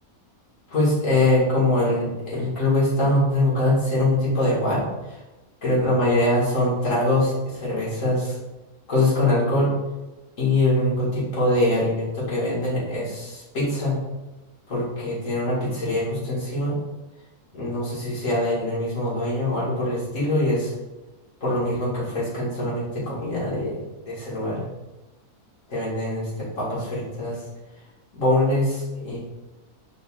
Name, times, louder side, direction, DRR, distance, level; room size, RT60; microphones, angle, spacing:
voice 1, 0.7-5.2 5.6-8.4 8.9-9.7 10.4-14.0 14.7-16.8 17.5-20.7 21.4-23.8 24.1-24.6 25.7-27.4 28.1-29.2, left 1 dB, 55° left, -7 dB, 2.2 m, -23 dB
5.1 x 4.2 x 2.4 m, 1.1 s
omnidirectional pair, 1.6 m